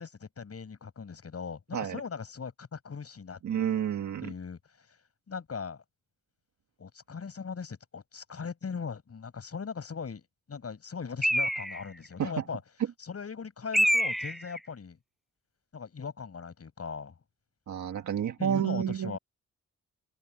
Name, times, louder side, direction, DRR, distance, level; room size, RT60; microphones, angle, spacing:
voice 1, 0.0-3.4 4.2-4.9 5.3-5.8 6.8-12.6 13.0-15.0 15.7-17.1 18.4-19.2, left 5 dB, 55° left, 7.8 m, -39 dB
voice 2, 3.4-4.3 12.2-12.4 17.7-19.2, right 9 dB, 75° right, 1.9 m, -30 dB
Bird, 11.2-12.1 13.7-14.7, equal, ahead, 6.2 m, -27 dB
open air
cardioid pair, 65°, 29 cm